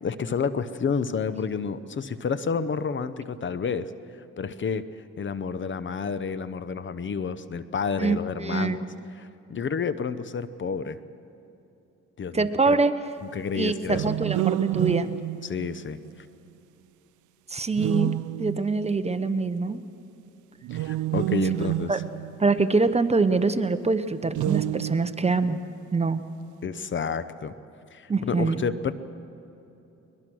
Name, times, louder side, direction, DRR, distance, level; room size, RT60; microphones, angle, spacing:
voice 1, 0.0-3.9 4.4-4.9 5.2-8.8 9.2-11.0 12.2-12.8 13.2-14.1 15.4-16.3 20.7-22.0 26.6-27.5 27.9-28.9, left 6 dB, 40° left, 14 dB, 0.8 m, -30 dB
voice 2, 8.0-8.8 12.3-12.9 13.5-15.1 17.5-18.1 18.4-19.8 21.9-22.0 22.4-25.6 25.9-26.2 28.1-28.6, right 3 dB, 20° right, 11 dB, 0.9 m, -24 dB
sound 1, 13.8-16.1 17.7-18.9 20.6-22.9 24.3-25.4, right 14 dB, 80° right, 0.5 m, -29 dB
22.5 x 21.0 x 6.3 m, 2.9 s
cardioid pair, 90°, 30 cm